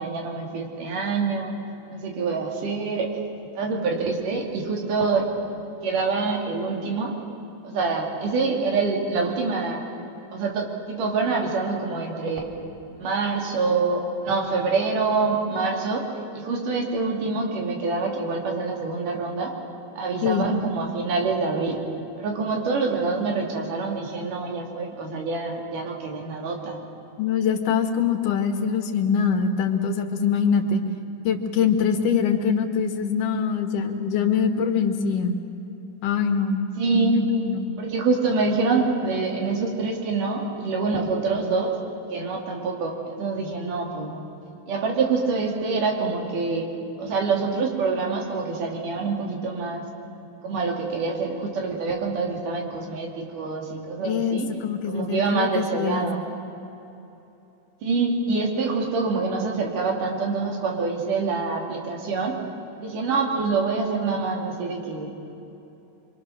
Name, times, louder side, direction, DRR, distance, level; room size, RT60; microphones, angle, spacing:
voice 1, 0.0-1.5 1.9-3.1 3.5-5.3 5.5-7.2 7.6-9.8 10.3-12.4 13.0-16.1 16.3-19.5 20.0-21.8 22.2-26.8 36.8-37.5 37.8-41.8 42.1-44.2 44.7-46.7 47.0-49.9 50.4-54.5 54.9-56.2 57.8-62.4 62.8-65.2, right 4 dB, 85° right, 1 dB, 4.1 m, -26 dB
voice 2, 20.2-20.5 27.2-30.8 31.2-35.4 36.0-36.6 36.9-37.6 54.0-56.1, left 6 dB, 90° left, 5 dB, 3.1 m, -23 dB
26.0 x 23.5 x 6.5 m, 2.9 s
omnidirectional pair, 3.6 m